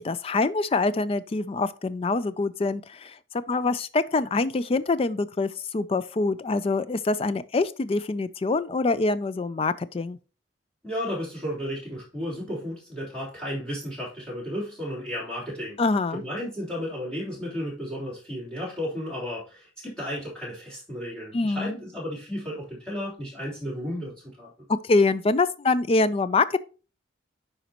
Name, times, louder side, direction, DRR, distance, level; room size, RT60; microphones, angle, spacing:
voice 1, 0.0-3.2 3.5-10.2 15.8-16.2 21.3-21.8 24.8-26.6, left 3 dB, 30° left, 0.3 m, -25 dB
voice 2, 10.8-15.8 16.1-24.5, equal, 5° left, 3.3 m, -33 dB
9.3 x 5.0 x 2.9 m
head